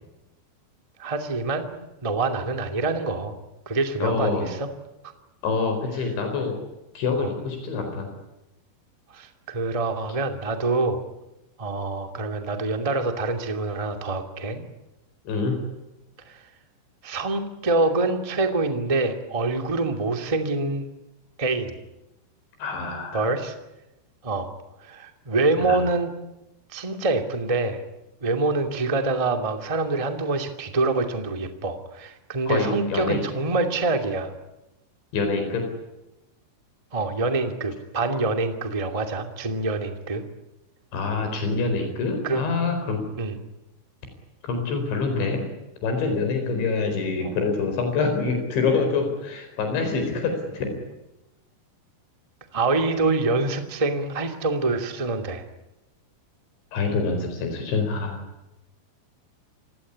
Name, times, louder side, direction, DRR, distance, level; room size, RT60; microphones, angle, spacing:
voice 1, 1.0-3.3 3.6-4.7 7.2-7.3 9.1-11.0 11.6-14.6 16.3-16.4 17.0-20.8 21.4-21.8 23.1-23.5 24.2-24.5 24.8-26.1 26.7-27.8 28.2-34.3 36.9-40.2 42.2-42.4 43.2-43.4 47.2-47.3 52.5-55.4, right 3 dB, 15° right, 6 dB, 1.2 m, -25 dB
voice 2, 4.0-4.5 5.4-6.5 6.9-8.1 15.3-15.6 22.6-23.3 25.6-25.8 32.5-33.2 35.1-35.6 40.9-43.0 44.4-45.5 45.8-50.7 56.7-58.2, left 4 dB, 75° left, 5 dB, 6.7 m, -26 dB
28.5 x 17.0 x 9.9 m, 0.95 s
omnidirectional pair, 5.2 m